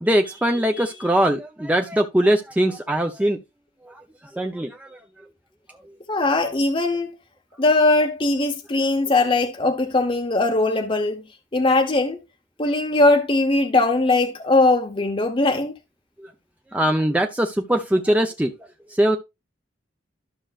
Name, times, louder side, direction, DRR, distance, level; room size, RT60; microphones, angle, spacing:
voice 1, 0.0-3.4 3.8-4.0 4.3-5.0 16.2-16.3 16.7-18.5 18.9-19.2, right 1 dB, 10° right, 0.6 m, -21 dB
voice 2, 6.1-7.1 7.6-11.2 11.5-12.2 12.6-15.8, left 2 dB, 30° left, 0.9 m, -20 dB
12.5 x 6.3 x 2.4 m
head